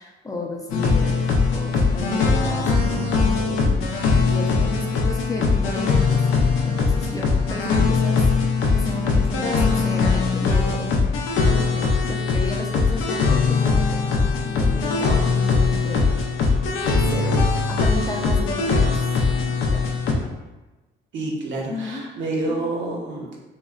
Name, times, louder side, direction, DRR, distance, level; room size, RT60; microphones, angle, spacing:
voice 1, 0.0-3.9 4.3-10.9 11.4-16.2 17.0-19.0 19.5-19.9 21.7-22.0, left 1 dB, 20° left, -1 dB, 0.4 m, -32 dB
sound 1, 0.7-20.1, left 4 dB, 90° left, 0.4 m, -21 dB
voice 2, 21.1-23.4, right 2 dB, 70° right, -1 dB, 0.7 m, -28 dB
3.6 x 2.0 x 2.3 m, 1.1 s
cardioid pair, 90°, 20 cm